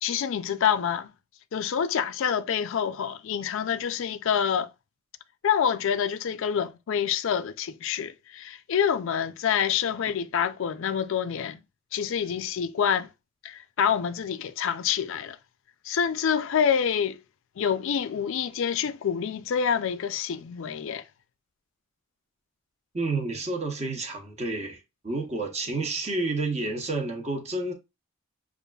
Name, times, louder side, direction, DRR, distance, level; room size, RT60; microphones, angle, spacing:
voice 1, 0.0-1.1 1.5-4.7 5.4-11.6 11.9-13.1 13.4-15.4 15.8-17.2 17.6-21.0, left 8 dB, 60° left, 0.4 m, -27 dB
voice 2, 22.9-27.7, right 2 dB, 30° right, 0.8 m, -30 dB
6.6 x 2.4 x 2.3 m
head